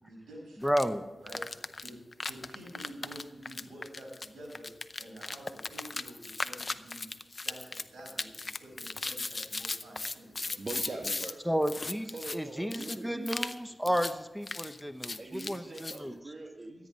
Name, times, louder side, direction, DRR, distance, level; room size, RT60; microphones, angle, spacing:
voice 1, 0.0-0.7 1.2-2.0 2.3-4.7 5.0-11.0, right 1 dB, 85° right, -2 dB, 5.7 m, -49 dB
voice 2, 0.6-1.0 11.5-16.2, equal, ahead, 10 dB, 0.8 m, -32 dB
sound 1, 0.7-0.9 1.3-11.3 11.6-12.4 12.7-13.0 13.3-13.6 13.9-14.1 14.4-16.0, left 3 dB, 45° left, 0.6 m, -37 dB
voice 3, 10.6-11.4 12.1-13.3 15.2-16.9, right 2 dB, 55° right, 2 dB, 1.4 m, -42 dB
13.5 x 9.6 x 5.4 m, 1.1 s
cardioid pair, 50°, 0 cm